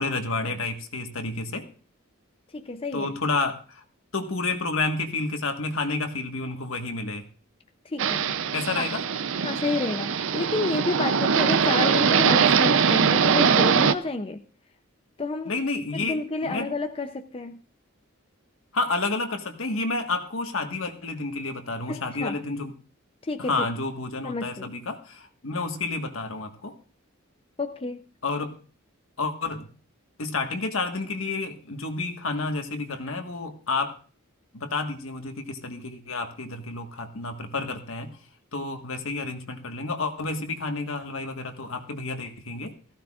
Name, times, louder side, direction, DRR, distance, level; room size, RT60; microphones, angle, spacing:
voice 1, 0.0-1.7 2.9-3.8 4.1-7.3 8.5-9.0 15.4-16.2 16.4-16.7 18.7-22.7 23.4-26.8 28.2-28.5 29.2-29.7 30.2-34.0 34.5-38.1 38.5-42.7, left 3 dB, 70° left, 5 dB, 1.6 m, -30 dB
voice 2, 2.5-3.1 7.8-8.4 8.7-8.8 9.4-14.4 15.2-15.5 15.9-17.6 21.9-22.4 23.2-23.6 24.2-24.7 27.6-28.0, left 3 dB, 25° left, 6 dB, 0.6 m, -30 dB
sound 1, 8.0-13.9, right 6 dB, 65° right, 0.6 m, -22 dB
18.0 x 14.5 x 2.4 m, 0.38 s
head